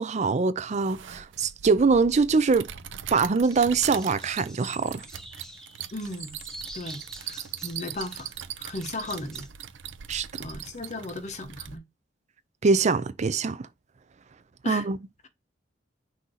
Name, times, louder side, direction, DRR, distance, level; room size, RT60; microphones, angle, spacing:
voice 1, 0.0-2.7 3.1-5.1 10.1-10.3 12.6-13.7 14.6-15.0, right 4 dB, 40° right, 0.4 m, -23 dB
sound 1, 0.7-11.8, right 10 dB, 90° right, 0.6 m, -40 dB
sound 2, 3.4-9.5, equal, 5° left, 1.0 m, -46 dB
voice 2, 5.9-6.4 6.7-8.3 8.6-9.5 10.4-11.8 14.6-14.9, left 2 dB, 40° left, 1.1 m, -36 dB
6.2 x 2.8 x 5.6 m
head